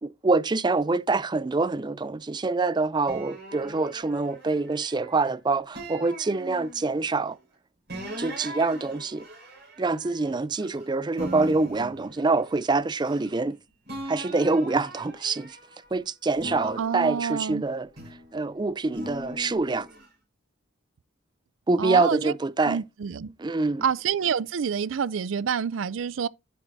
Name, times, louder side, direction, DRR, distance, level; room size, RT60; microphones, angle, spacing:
voice 1, 0.0-7.4 8.2-9.3 9.8-13.6 14.1-15.6 15.9-17.9 18.3-19.9 21.7-22.8 23.4-23.8, right 3 dB, 25° right, 0.4 m, -25 dB
sound 1, 3.1-5.2 5.8-7.1 7.9-10.8 11.2-13.5 13.9-15.9 16.4-18.3 18.9-20.1, right 1 dB, 55° right, 5.4 m, -41 dB
voice 2, 16.8-17.6 21.8-22.3 22.6-23.3 23.8-26.3, right 7 dB, 80° right, 0.4 m, -27 dB
10.0 x 7.9 x 2.7 m
head